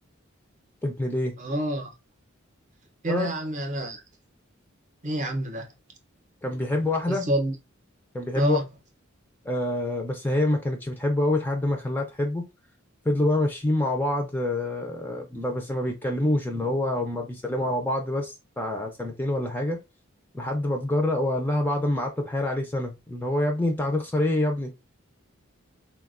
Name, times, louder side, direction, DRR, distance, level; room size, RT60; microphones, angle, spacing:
voice 1, 0.8-1.3 3.1-3.3 6.4-7.3 8.1-8.6 9.5-12.5 13.1-19.8 20.3-24.7, left 1 dB, 10° left, 0.3 m, -26 dB
voice 2, 1.4-1.9 3.0-4.0 5.0-5.7 7.1-7.5 8.3-8.6, right 1 dB, 35° right, 0.6 m, -28 dB
3.3 x 2.2 x 2.4 m
head